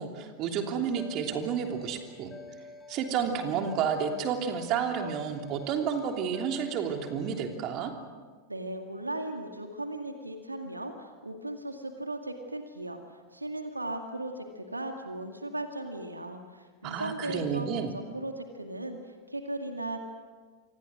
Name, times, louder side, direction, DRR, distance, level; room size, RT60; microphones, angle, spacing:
voice 1, 0.0-2.3 2.9-7.9 16.8-17.9, right 7 dB, 35° right, 4 dB, 3.2 m, -31 dB
sound 1, 0.9-7.6, left 3 dB, 15° left, 2.9 m, -49 dB
voice 2, 8.5-20.0, right 1 dB, 85° right, 5 dB, 2.1 m, -37 dB
28.5 x 25.0 x 6.4 m, 1.4 s
figure-of-eight pair, 90°, 0 cm